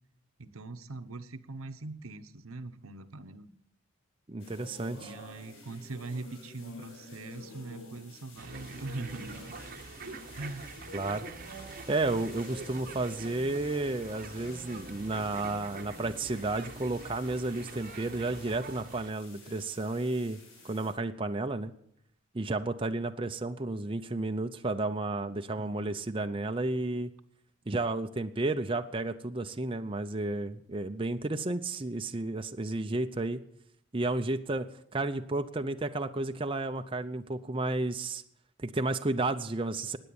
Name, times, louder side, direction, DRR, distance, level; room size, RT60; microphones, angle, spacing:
voice 1, 0.4-3.5 5.0-9.4 10.4-10.8 25.6-25.9, right 2 dB, 85° right, 9 dB, 1.0 m, -42 dB
voice 2, 4.3-5.1 10.9-11.3 11.9-20.4 20.6-21.7 22.3-27.1 27.7-33.4 33.9-34.7 34.9-38.2 38.6-40.0, right 2 dB, 25° right, 7 dB, 0.6 m, -32 dB
sound 1, 4.4-20.9, left 2 dB, 65° left, 5.4 m, -49 dB
sound 2, 8.4-19.1, right 4 dB, 40° right, 0.9 m, -46 dB
16.0 x 9.9 x 7.0 m, 0.71 s
head